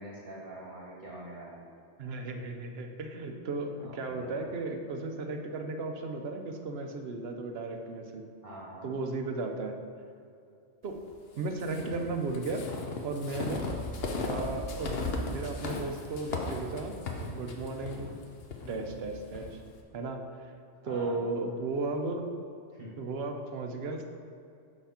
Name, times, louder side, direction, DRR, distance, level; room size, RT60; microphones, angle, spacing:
voice 1, 0.0-1.6 3.8-4.5 8.4-8.9 20.8-21.2 22.7-23.0, right 1 dB, 45° right, -5 dB, 1.4 m, -45 dB
voice 2, 2.0-8.3 8.8-9.7 10.8-11.0 11.3-12.7 13.0-13.7 14.3-15.0 15.3-16.9 17.4-18.2 18.7-19.6 19.9-20.5 20.8-22.3 23.0-24.1, right 3 dB, 65° right, 5 dB, 0.9 m, -35 dB
sound 1, 11.6-19.5, left 3 dB, 60° left, 1.0 m, -36 dB
6.7 x 5.7 x 4.3 m, 2.5 s
omnidirectional pair, 1.2 m